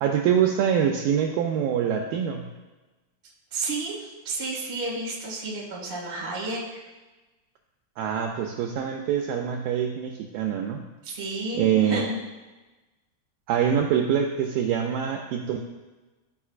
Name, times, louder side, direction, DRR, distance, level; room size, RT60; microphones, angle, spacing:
voice 1, 0.0-2.5 8.0-10.8 11.5-12.1 13.5-15.6, right 8 dB, 85° right, 2 dB, 2.0 m, -24 dB
voice 2, 3.5-6.8 11.0-12.2, right 2 dB, 60° right, -4 dB, 0.6 m, -31 dB
13.0 x 5.0 x 2.4 m, 1.2 s
omnidirectional pair, 4.5 m